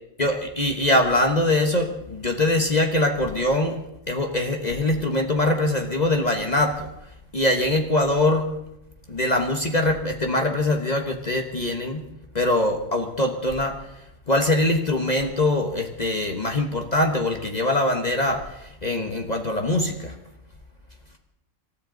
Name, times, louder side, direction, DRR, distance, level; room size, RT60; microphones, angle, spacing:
voice 1, 0.2-3.8 4.1-6.9 7.3-8.5 9.1-12.0 12.3-13.8 14.3-20.1, left 1 dB, 35° left, 3 dB, 1.3 m, -23 dB
26.5 x 13.5 x 3.9 m, 0.85 s
omnidirectional pair, 1.3 m